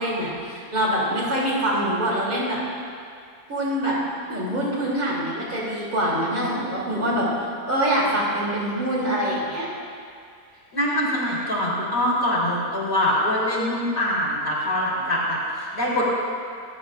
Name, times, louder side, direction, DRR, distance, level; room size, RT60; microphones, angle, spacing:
voice 1, 0.0-2.6 3.5-4.0 4.3-9.7, right 1 dB, 65° right, -6 dB, 3.8 m, -24 dB
voice 2, 10.7-16.0, left 1 dB, 35° left, -7 dB, 4.0 m, -24 dB
27.0 x 13.0 x 2.6 m, 2.3 s
omnidirectional pair, 1.6 m